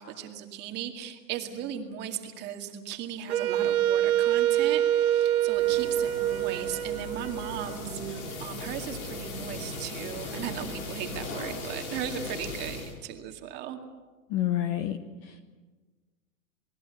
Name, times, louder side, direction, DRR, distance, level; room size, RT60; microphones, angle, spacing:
voice 1, 0.0-13.8, right 9 dB, 25° right, 4 dB, 2.2 m, -37 dB
Wind instrument woodwind instrument, 3.3-8.2, right 12 dB, 85° right, 1.2 m, -26 dB
sound 1, 5.5-12.9, left 2 dB, 80° left, 6.9 m, -38 dB
voice 2, 14.3-15.0 15.2-15.5, left 12 dB, 25° left, 10 dB, 1.0 m, -29 dB
27.5 x 20.0 x 8.2 m, 1.3 s
supercardioid pair, 165°, 42 cm